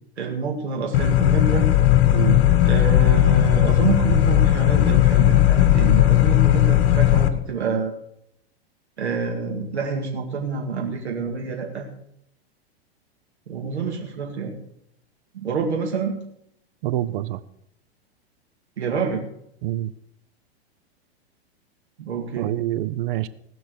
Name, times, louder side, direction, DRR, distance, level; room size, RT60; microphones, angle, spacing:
voice 1, 0.2-1.7 2.6-7.9 9.0-11.9 13.5-14.5 15.3-16.2 18.8-19.2 22.0-22.5, right 5 dB, 90° right, 1 dB, 2.1 m, -27 dB
sound 1, 0.9-7.3, left 12 dB, 55° left, 1.4 m, -17 dB
voice 2, 16.8-17.4 19.6-19.9 22.4-23.3, right 15 dB, 55° right, 15 dB, 0.7 m, -26 dB
18.0 x 6.2 x 6.6 m, 0.75 s
hypercardioid pair, 115°, 32 cm